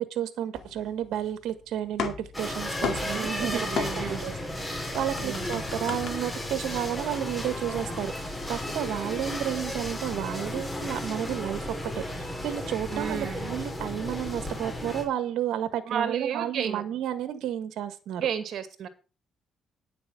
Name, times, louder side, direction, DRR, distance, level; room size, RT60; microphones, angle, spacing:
voice 1, 0.0-4.3 4.7-18.3, right 11 dB, 80° right, 11 dB, 1.4 m, -32 dB
sound 1, 0.5-1.5 1.7-4.3 4.6-6.1, left 8 dB, 75° left, 2.1 m, -35 dB
sound 2, 2.3-15.0, left 1 dB, 15° left, 3.9 m, -34 dB
voice 2, 3.1-4.2 5.2-5.5 12.9-13.5 15.9-16.8 18.2-18.9, right 8 dB, 65° right, 9 dB, 2.4 m, -32 dB
10.0 x 6.9 x 6.7 m, 0.34 s
cardioid pair, 90°, 0 cm